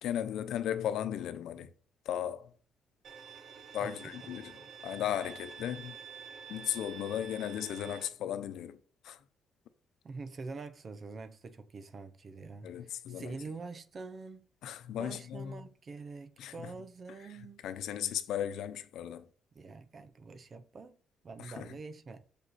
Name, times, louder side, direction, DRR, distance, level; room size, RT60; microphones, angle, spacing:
voice 1, 0.0-1.7 2.0-2.5 3.7-4.6 4.8-6.0 6.5-8.8 9.0-9.2 12.6-13.4 14.6-15.6 16.4-16.7 17.4-19.3 21.4-21.8, left 10 dB, 80° left, 0.7 m, -36 dB
Bowed string instrument, 3.0-8.1, right 6 dB, 60° right, 1.0 m, -48 dB
voice 2, 3.8-4.1 10.0-17.6 19.5-21.0 21.2-22.2, right 4 dB, 45° right, 0.6 m, -45 dB
6.6 x 5.2 x 4.1 m
cardioid pair, 90°, 0 cm